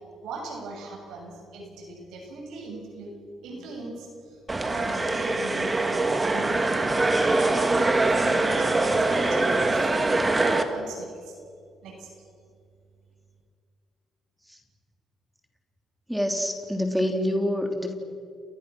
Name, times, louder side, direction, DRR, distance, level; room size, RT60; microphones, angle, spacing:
voice 1, 0.2-3.2 3.4-6.9 7.3-11.4 11.8-12.1, right 2 dB, 85° right, 2 dB, 6.8 m, -38 dB
sound 1, 4.5-10.6, right 2 dB, 25° right, 2.3 m, -23 dB
voice 2, 16.1-17.9, left 1 dB, 5° right, 3 dB, 3.3 m, -26 dB
30.0 x 28.0 x 6.3 m, 2.4 s
cardioid pair, 90°, 0 cm